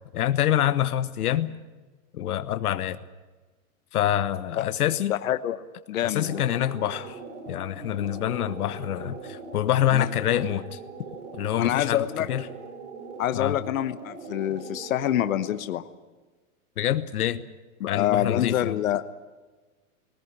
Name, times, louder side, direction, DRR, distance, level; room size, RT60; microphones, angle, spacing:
voice 1, 0.1-1.5 2.1-3.0 3.9-5.1 6.0-7.2 7.5-10.8 11.4-12.4 13.3-13.6 16.8-17.4 17.9-18.8, left 11 dB, 85° left, 12 dB, 1.1 m, -26 dB
voice 2, 5.1-5.6 5.9-6.4 9.9-10.1 11.6-12.3 13.2-15.8 17.8-19.0, left 12 dB, 65° left, 11 dB, 1.2 m, -26 dB
sound 1, 6.0-15.6, right 4 dB, 55° right, 4.5 m, -41 dB
19.5 x 18.5 x 9.9 m, 1.3 s
supercardioid pair, 180°, 43 cm